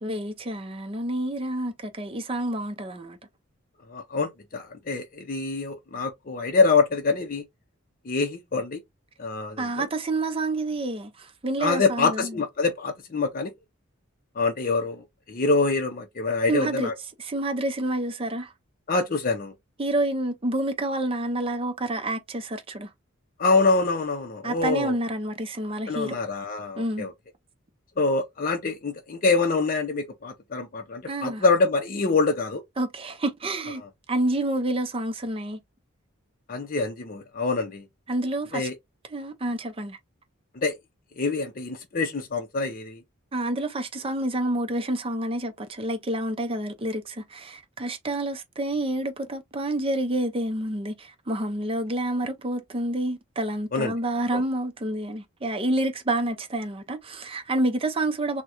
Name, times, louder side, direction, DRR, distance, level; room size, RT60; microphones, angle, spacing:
voice 1, 0.0-3.2 9.6-12.4 16.5-16.9 17.2-18.5 19.8-22.9 24.4-26.2 26.8-27.1 31.1-31.4 32.8-33.8 34.1-35.6 38.1-38.7 39.1-40.0 43.3-58.4, right 1 dB, 25° right, 0.5 m, -28 dB
voice 2, 3.9-7.4 8.0-8.8 9.2-9.9 11.6-13.5 14.4-16.9 18.9-19.5 23.4-25.0 25.9-27.1 28.0-32.6 36.5-37.8 38.5-38.8 40.5-40.8 41.2-43.0 53.7-54.0 54.3-54.4, left 3 dB, 40° left, 0.6 m, -25 dB
3.6 x 2.1 x 2.9 m
head